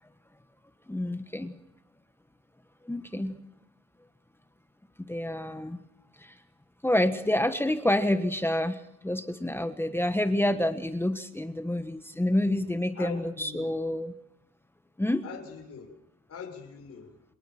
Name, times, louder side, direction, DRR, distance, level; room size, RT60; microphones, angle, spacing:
voice 1, 0.9-1.6 2.8-3.4 5.0-5.8 6.2-6.4 6.8-14.1 15.0-15.2, left 1 dB, 10° left, 9 dB, 1.3 m, -28 dB
voice 2, 13.0-13.7 15.2-15.9 16.3-17.1, left 6 dB, 55° left, 3 dB, 6.3 m, -42 dB
27.0 x 18.5 x 5.9 m, 0.82 s
cardioid pair, 90°, 30 cm